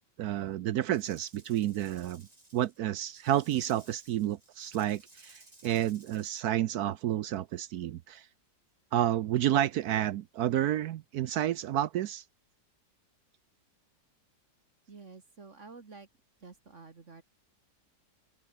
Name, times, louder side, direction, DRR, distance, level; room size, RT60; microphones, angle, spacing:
voice 1, 0.2-2.3 2.5-8.3 8.9-12.2, right 12 dB, 70° right, 1.0 m, -30 dB
Rattle / Rattle (instrument), 0.9-6.4, right 2 dB, 20° right, 3.1 m, -58 dB
voice 2, 14.9-16.1 16.4-17.2, right 4 dB, 40° right, 2.0 m, -50 dB
omnidirectional pair, 2.0 m